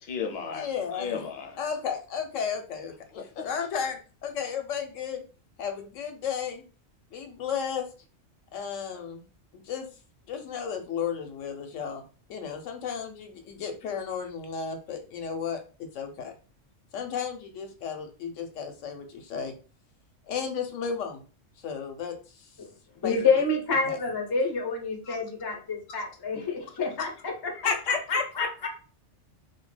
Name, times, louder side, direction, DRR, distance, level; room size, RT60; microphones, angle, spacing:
voice 1, 0.0-0.7 0.9-1.6 3.1-3.5, left 6 dB, 60° left, 0.8 m, -34 dB
voice 2, 0.5-1.2 1.6-2.9 3.4-5.2 5.6-6.6 7.1-7.9 8.5-9.2 9.5-9.9 10.3-12.0 12.3-15.6 15.9-16.3 16.9-19.5 20.3-21.2 21.6-22.5 23.0-23.2 23.9-24.0 25.1-25.2 27.6-28.7, left 6 dB, 85° left, 0.9 m, -33 dB
voice 3, 23.0-27.7 28.1-28.4, left 4 dB, 35° left, 0.3 m, -28 dB
2.4 x 2.1 x 3.2 m
omnidirectional pair, 1.3 m